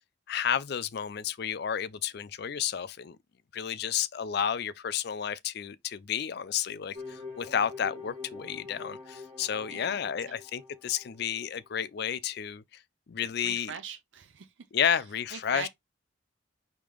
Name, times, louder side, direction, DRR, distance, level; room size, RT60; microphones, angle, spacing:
voice 1, 0.3-3.2 3.5-12.6 13.1-13.7 14.7-15.7, left 8 dB, 55° left, 0.4 m, -31 dB
sound 1, 6.9-11.5, left 4 dB, 30° right, 2.6 m, -45 dB
voice 2, 13.2-14.5 14.8-15.0 15.3-15.7, right 7 dB, 65° right, 0.5 m, -42 dB
4.9 x 2.8 x 3.5 m
head